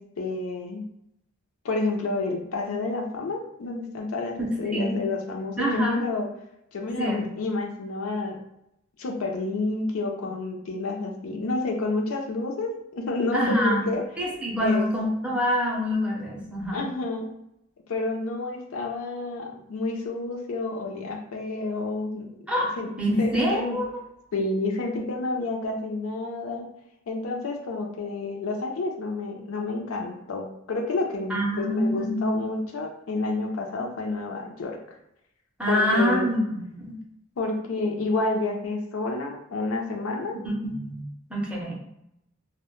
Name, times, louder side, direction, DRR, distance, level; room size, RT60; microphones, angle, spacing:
voice 1, 0.2-0.8 1.6-6.3 6.7-8.4 9.0-14.0 14.6-14.9 16.7-17.3 17.9-22.3 22.6-22.9 23.2-23.8 24.3-26.7 27.1-34.8 35.7-36.3 37.4-40.4, left 3 dB, 80° left, 2 dB, 0.4 m, -29 dB
voice 2, 4.4-5.0 5.6-6.0 7.0-7.2 13.3-13.9 14.2-16.8 22.5-22.7 23.0-23.8 31.3-32.4 35.6-37.0 40.4-41.7, equal, 5° right, -3 dB, 0.5 m, -26 dB
2.1 x 2.0 x 2.9 m, 0.81 s
head